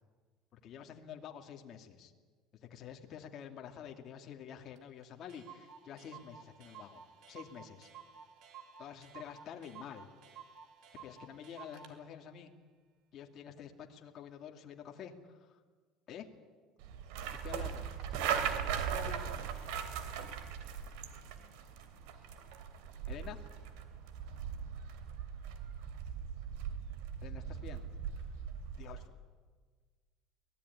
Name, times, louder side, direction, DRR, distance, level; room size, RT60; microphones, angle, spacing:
voice 1, 0.5-2.1 2.6-7.9 8.8-10.1 10.9-12.5 13.1-15.6 16.1-16.3 17.4-17.9 18.8-19.4 23.1-23.5 27.2-27.8 28.2-28.3 28.8-29.0, left 8 dB, 40° left, 3 dB, 2.6 m, -48 dB
Clock, 4.8-4.9 5.0-5.1 5.3-12.0, right 7 dB, 60° right, 3.3 m, -53 dB
sound 1, 16.8-29.1, right 8 dB, 80° right, 3.0 m, -39 dB
24.0 x 18.5 x 10.0 m, 1.5 s
cardioid pair, 150°, 0 cm